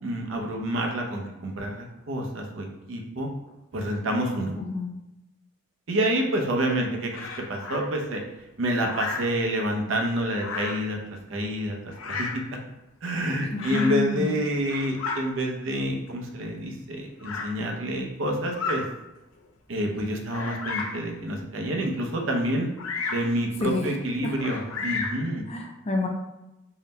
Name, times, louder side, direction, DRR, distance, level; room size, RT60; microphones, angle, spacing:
voice 1, 0.0-3.3 3.7-4.5 5.9-8.2 8.6-12.4 13.0-18.8 19.7-22.7 23.1-25.5, right 1 dB, 70° right, 1 dB, 0.6 m, -28 dB
voice 2, 4.5-4.9 13.5-14.3 23.6-23.8 24.2-24.3 25.5-26.1, left 4 dB, 30° left, 1 dB, 0.5 m, -28 dB
Bird vocalization bird call bird song, 7.1-7.8 8.8-9.4 10.3-10.9 11.9-12.5 13.6-14.0 14.5-15.2 16.1-16.2 17.2-17.5 18.4-18.8 19.4-19.5 20.3-21.0 22.8-23.3 24.4-25.3, left 4 dB, 85° left, 0.5 m, -32 dB
3.8 x 2.1 x 3.9 m, 0.95 s
head